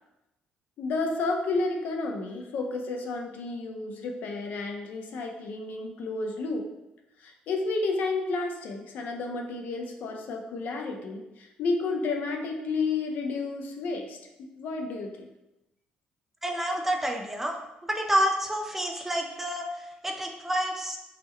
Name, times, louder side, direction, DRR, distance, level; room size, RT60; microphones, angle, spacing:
voice 1, 0.8-6.7 7.2-14.2 14.6-15.3, left 3 dB, 65° left, 3 dB, 0.5 m, -31 dB
voice 2, 16.4-17.6 17.9-21.0, equal, 10° right, 2 dB, 0.3 m, -28 dB
3.5 x 2.1 x 3.1 m, 0.94 s
cardioid pair, 130°, 3 cm